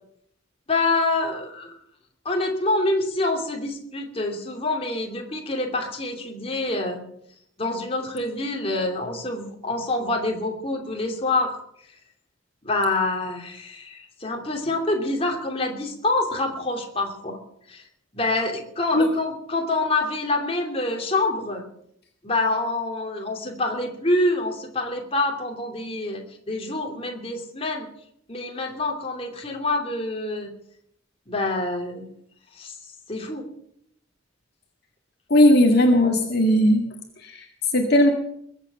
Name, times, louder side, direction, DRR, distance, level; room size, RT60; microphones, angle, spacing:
voice 1, 0.7-1.8 2.2-7.0 7.6-11.6 12.6-17.4 17.7-17.8 18.1-21.6 22.2-27.9 28.3-30.5 31.3-32.1 32.6-32.8 33.1-33.5, left 2 dB, 30° left, 2 dB, 2.8 m, -26 dB
voice 2, 35.3-36.8 37.2-37.4 37.7-38.1, left 1 dB, 55° left, 2 dB, 2.1 m, -17 dB
21.5 x 8.1 x 7.8 m, 0.71 s
head